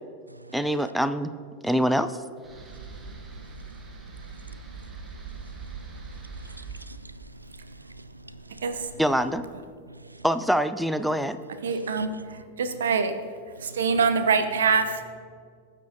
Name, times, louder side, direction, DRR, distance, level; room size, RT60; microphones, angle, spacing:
voice 1, 0.5-1.3 1.6-2.2 9.0-9.4 10.2-11.4, equal, ahead, 0.4 m, -24 dB
sound 1, 2.4-9.6, right 5 dB, 20° right, 0.9 m, -43 dB
voice 2, 2.6-8.7 9.9-10.2 12.0-12.1 13.6-13.8, right 1 dB, 90° right, 0.3 m, -48 dB
voice 3, 11.6-13.1 13.6-15.0, right 5 dB, 70° right, 0.7 m, -24 dB
17.5 x 7.2 x 2.8 m
figure-of-eight pair, 90°, 0 cm